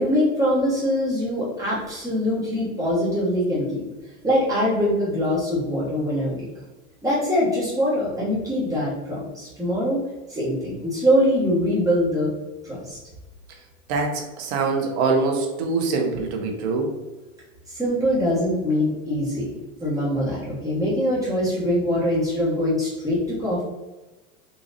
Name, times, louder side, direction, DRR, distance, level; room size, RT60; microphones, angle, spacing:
voice 1, 0.0-3.8 4.2-6.5 7.0-10.0 10.3-12.3 12.6-13.0 17.7-19.5 19.8-23.6, equal, 10° right, -8 dB, 1.4 m, -23 dB
voice 2, 13.9-16.9, right 4 dB, 55° right, 2 dB, 1.0 m, -24 dB
3.9 x 2.7 x 2.6 m, 1.1 s
supercardioid pair, 135°, 41 cm